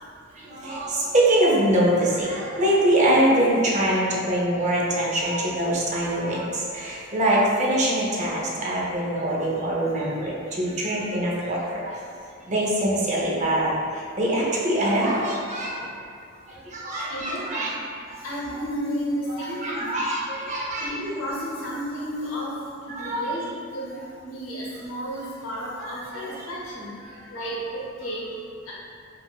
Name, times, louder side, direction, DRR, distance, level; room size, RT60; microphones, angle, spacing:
voice 1, 0.4-12.0 12.5-15.9 16.5-17.7 18.1-18.2 19.4-21.0 22.9-23.3 25.8-26.3 27.0-27.1 27.4-27.5, right 1 dB, 35° right, -5 dB, 0.5 m, -24 dB
voice 2, 17.1-17.8 18.1-20.0 20.8-23.5 23.7-28.7, equal, 85° left, -5 dB, 0.7 m, -33 dB
3.4 x 2.4 x 2.3 m, 2.3 s
head